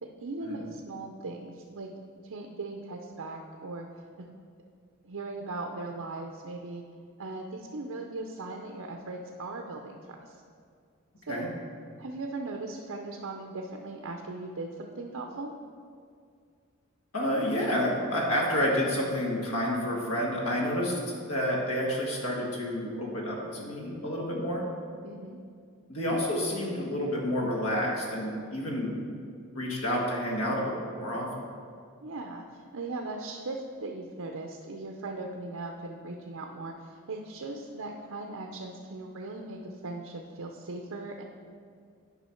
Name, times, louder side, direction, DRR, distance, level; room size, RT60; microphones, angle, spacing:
voice 1, 0.0-1.9 2.2-3.9 4.2-4.4 5.0-6.8 7.2-10.3 11.3-11.5 12.0-15.5 25.0-25.4 32.0-41.2, right 2 dB, 75° right, 2 dB, 0.6 m, -39 dB
voice 2, 17.1-21.0 21.3-24.7 25.9-28.9 29.5-31.3, equal, 80° left, -2 dB, 1.7 m, -29 dB
10.0 x 5.5 x 4.4 m, 2.2 s
head